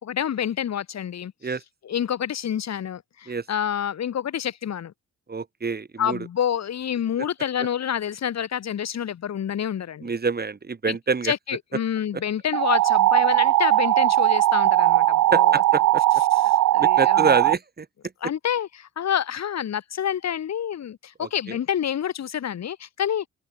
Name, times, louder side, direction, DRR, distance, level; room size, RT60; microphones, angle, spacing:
voice 1, 0.0-1.3 1.8-4.9 6.0-10.1 10.9-11.0 11.2-15.6 16.5-17.3 18.2-23.3, left 9 dB, 60° left, 5.4 m, -28 dB
voice 2, 5.3-6.2 10.0-11.3 15.3-16.0 16.8-17.9 21.2-21.6, right 4 dB, 30° right, 7.5 m, -26 dB
sound 1, 12.5-17.5, right 15 dB, 85° right, 3.7 m, -19 dB
cardioid pair, 90°, 30 cm